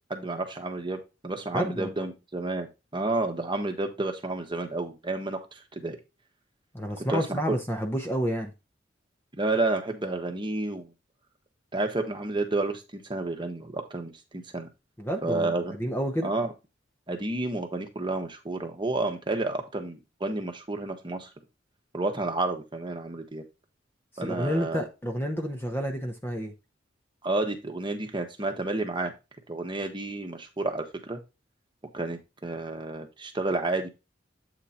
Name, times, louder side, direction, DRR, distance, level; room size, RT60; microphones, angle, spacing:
voice 1, 0.1-6.0 7.1-7.6 9.4-10.9 11.7-14.7 15.2-15.7 16.2-16.5 17.1-21.3 21.9-23.4 24.2-24.8 27.2-29.1 29.5-31.2 31.9-33.9, right 2 dB, 25° right, 1.1 m, -30 dB
voice 2, 1.5-1.9 6.7-8.5 15.0-16.3 24.1-26.5, equal, 10° left, 0.8 m, -30 dB
8.2 x 3.8 x 4.2 m
head